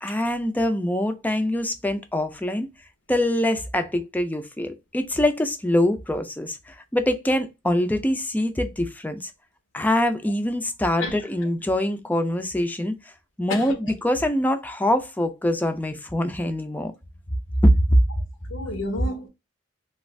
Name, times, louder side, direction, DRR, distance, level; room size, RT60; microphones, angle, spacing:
voice 1, 0.0-2.7 3.1-9.3 9.7-12.9 13.4-16.9 17.6-18.0, left 1 dB, 10° left, 0.4 m, -23 dB
voice 2, 13.5-13.9 18.5-19.3, left 2 dB, 85° left, 0.9 m, -31 dB
2.5 x 2.3 x 3.2 m
head